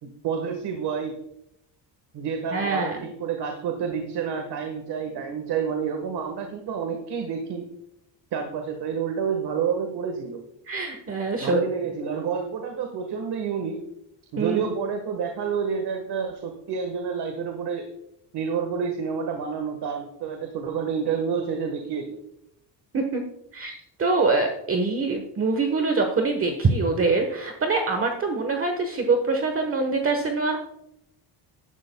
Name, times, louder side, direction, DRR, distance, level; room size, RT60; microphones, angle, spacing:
voice 1, 0.0-1.2 2.1-7.7 8.3-10.4 11.4-13.8 14.3-17.9 18.3-22.2, right 6 dB, 65° right, 4 dB, 1.6 m, -29 dB
voice 2, 2.5-3.0 10.7-11.6 14.4-14.7 22.9-23.2 23.5-30.6, right 3 dB, 30° right, 4 dB, 1.2 m, -24 dB
15.5 x 12.0 x 2.3 m, 0.82 s
cardioid pair, 135°, 44 cm